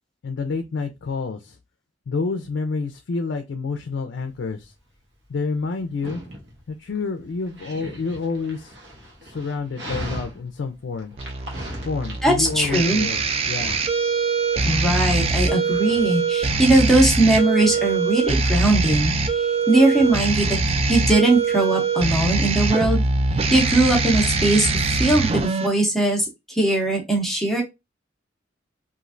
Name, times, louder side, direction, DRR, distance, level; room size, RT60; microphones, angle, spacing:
voice 1, 0.2-1.6 2.1-4.7 5.3-6.2 6.7-8.7 9.2-11.2 11.8-13.8, left 4 dB, 65° left, 7 dB, 0.4 m, -28 dB
Dog, 4.2-23.4, equal, 65° right, 1.0 m, -41 dB
sound 1, 11.2-25.7, right 4 dB, 30° right, 0.3 m, -23 dB
voice 2, 12.2-13.1 14.7-19.1 19.7-20.6 20.9-23.0 23.5-27.6, right 2 dB, ahead, -1 dB, 0.7 m, -20 dB
3.1 x 2.4 x 2.5 m, 0.23 s
head